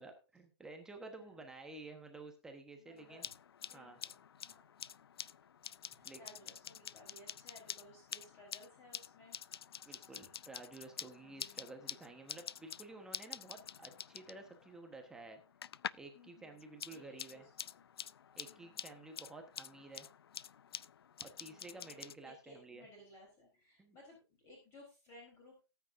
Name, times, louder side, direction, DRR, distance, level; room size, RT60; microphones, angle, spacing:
voice 1, 0.0-3.3 3.7-4.0 6.0-6.2 9.9-15.4 15.9-17.4 18.4-20.1 21.2-22.8 23.8-24.0, right 3 dB, 5° right, 4 dB, 1.2 m, -52 dB
voice 2, 2.8-3.2 3.6-4.1 4.4-4.8 5.9-9.4 9.8-10.1 11.2-11.7 13.4-13.8 16.1-16.6 16.9-17.8 18.5-18.8 21.4-21.8 22.2-25.6, left 1 dB, 20° left, -1 dB, 3.9 m, -60 dB
sound 1, 3.0-16.1 16.4-22.2, left 8 dB, 60° left, 0.5 m, -48 dB
18.5 x 9.2 x 2.6 m, 0.29 s
hypercardioid pair, 160°, 15 cm